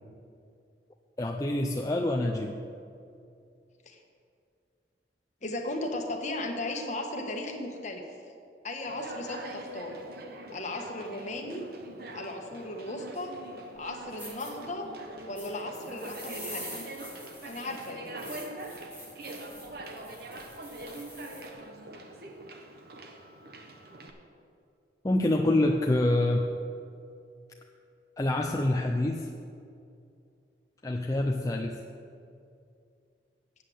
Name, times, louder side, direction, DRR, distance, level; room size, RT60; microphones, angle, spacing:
voice 1, 1.2-2.6 25.0-26.5 28.2-29.3 30.8-31.8, left 1 dB, 20° left, 2 dB, 0.5 m, -26 dB
voice 2, 5.4-8.0 8.6-10.0 10.5-11.6 12.1-13.3 13.8-14.9 15.2-16.8 17.4-18.1, left 2 dB, 40° left, 2 dB, 1.3 m, -36 dB
Conversation, 8.9-24.1, right 1 dB, 55° right, 1.0 m, -43 dB
sound 1, 13.8-13.9 14.2-14.5 15.3-21.5, equal, 10° right, 2.1 m, -45 dB
8.5 x 8.1 x 7.7 m, 2.5 s
head